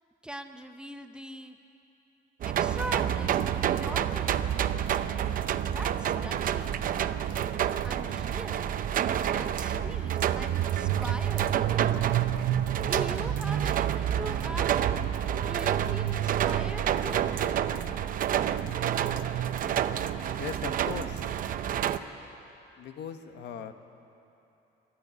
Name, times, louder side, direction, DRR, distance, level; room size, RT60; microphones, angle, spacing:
voice 1, 0.2-1.6 2.4-4.5 5.6-7.0 7.8-8.7 9.3-11.7 12.8-14.8 15.4-17.3, right 1 dB, 5° right, 6 dB, 0.7 m, -41 dB
sound 1, 2.4-22.0, right 10 dB, 45° right, 0.7 m, -28 dB
voice 2, 20.3-21.3 22.8-23.7, left 8 dB, 65° left, 8 dB, 1.3 m, -39 dB
26.5 x 13.0 x 9.7 m, 3.0 s
cardioid pair, 160°, 19 cm